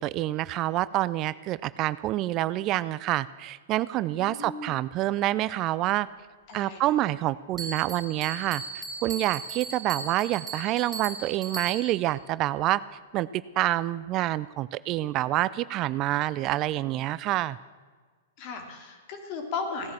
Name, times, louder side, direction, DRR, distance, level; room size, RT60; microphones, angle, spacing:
voice 1, 0.0-6.1 6.5-12.8 13.1-17.6, right 15 dB, 40° right, 17 dB, 0.4 m, -27 dB
voice 2, 4.1-4.8 6.5-6.9 18.4-19.9, left 4 dB, 45° left, 4 dB, 3.3 m, -36 dB
Bell, 7.6-12.1, right 4 dB, 10° right, 4.1 m, -37 dB
17.0 x 10.5 x 7.6 m, 1.5 s
hypercardioid pair, 115°, 0 cm